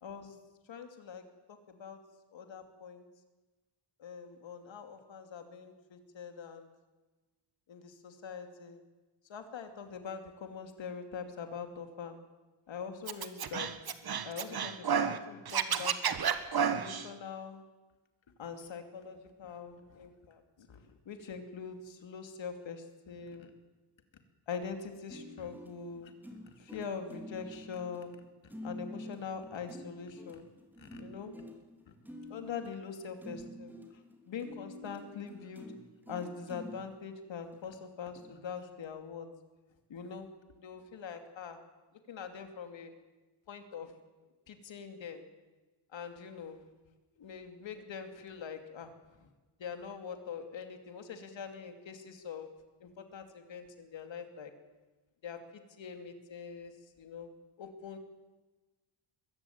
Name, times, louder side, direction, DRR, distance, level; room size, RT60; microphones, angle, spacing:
voice 1, 0.0-0.4 0.7-1.2 1.7-2.0 2.3-3.1 4.0-6.7 7.7-8.8 9.3-12.2 12.7-13.7 14.0-16.2 16.7-17.6 18.4-23.5 24.5-26.1 26.6-28.2 28.6-30.5 30.8-31.3 32.3-33.7 34.3-35.7 36.1-39.3 39.9-40.3 40.6-41.6 42.1-42.9 43.5-43.9 44.5-45.2 45.9-46.6 47.2-48.9 49.6-52.5 52.8-54.5 55.2-55.4 55.8-56.7 57.0-57.3 57.6-58.0, left 6 dB, 60° left, 7 dB, 2.8 m, -43 dB
Scratching (performance technique), 13.1-15.2 15.5-17.1, right 7 dB, 45° right, 1.5 m, -31 dB
sound 1, 25.1-36.9 37.5-37.6 38.2-38.3, left 1 dB, 5° right, 3.5 m, -48 dB
22.0 x 15.0 x 9.5 m, 1.2 s
wide cardioid pair, 140°, 50 cm